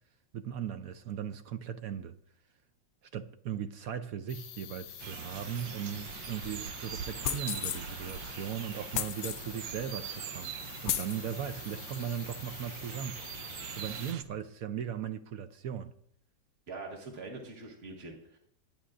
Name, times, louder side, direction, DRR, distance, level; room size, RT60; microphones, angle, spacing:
voice 1, 0.3-2.1 3.1-10.5 10.8-13.2 13.8-15.9, right 9 dB, 65° right, 0.9 m, -38 dB
sound 1, 4.3-14.1, left 12 dB, 90° left, 1.3 m, -47 dB
sound 2, 5.0-14.2, right 9 dB, 85° right, 1.3 m, -43 dB
sound 3, 7.2-7.8 8.9-9.5 10.2-10.3 10.8-11.2, left 11 dB, 70° left, 0.9 m, -33 dB
voice 2, 16.7-18.4, right 3 dB, 35° right, 2.0 m, -43 dB
22.5 x 9.6 x 2.6 m
omnidirectional pair, 1.9 m